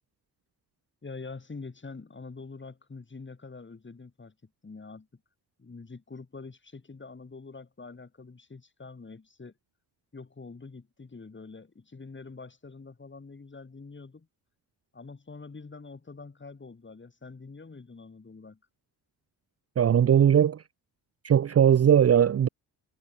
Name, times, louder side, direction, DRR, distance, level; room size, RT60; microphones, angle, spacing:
voice 1, 1.0-5.1 5.6-9.5 10.1-14.3 14.9-18.6, left 4 dB, 25° left, 4.7 m, -45 dB
voice 2, 19.8-20.6 21.2-22.5, right 9 dB, 35° right, 0.6 m, -19 dB
cardioid pair, 100°, 41 cm